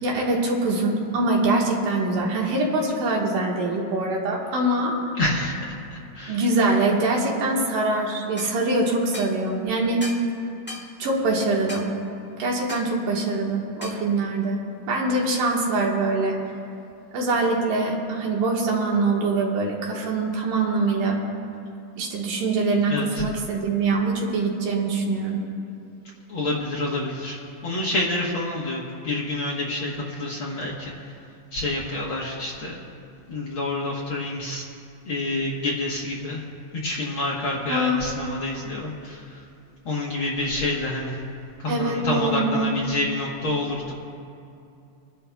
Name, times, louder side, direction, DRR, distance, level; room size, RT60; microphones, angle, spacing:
voice 1, 0.0-5.0 6.3-10.0 11.0-11.9 12.4-14.6 14.9-16.4 17.1-21.2 22.0-25.4 37.7-38.0 41.7-42.7, right 2 dB, 75° right, -2 dB, 3.1 m, -23 dB
voice 2, 5.2-6.4 22.9-23.2 26.3-30.9 31.5-32.8 33.3-34.6 35.0-36.4 36.8-39.4 39.8-41.2 41.6-43.9, left 2 dB, 55° left, -4 dB, 1.5 m, -28 dB
sound 1, 8.4-8.5 9.1-9.3 10.0-10.3 10.7-10.9 11.7-11.9 12.7-12.9 13.8-14.0, equal, 15° left, 0.4 m, -36 dB
28.5 x 11.0 x 2.3 m, 2.6 s
omnidirectional pair, 3.8 m